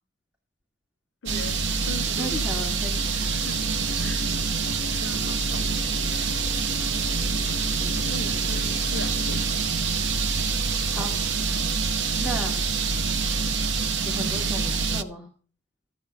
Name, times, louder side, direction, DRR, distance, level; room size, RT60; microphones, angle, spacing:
voice 1, 1.2-2.5 3.1-3.6 4.0-4.3 5.0-5.9 7.9-9.6, left 3 dB, 85° left, 0.7 m, -40 dB
sound 1, 1.3-15.0, right 4 dB, 75° right, 1.0 m, -26 dB
voice 2, 2.1-3.2 7.8-8.0 10.9-11.1 12.2-12.6 14.0-15.3, right 1 dB, 5° right, 2.3 m, -35 dB
sound 2, 3.4-9.5, left 2 dB, 45° right, 1.2 m, -39 dB
14.0 x 8.6 x 5.8 m
head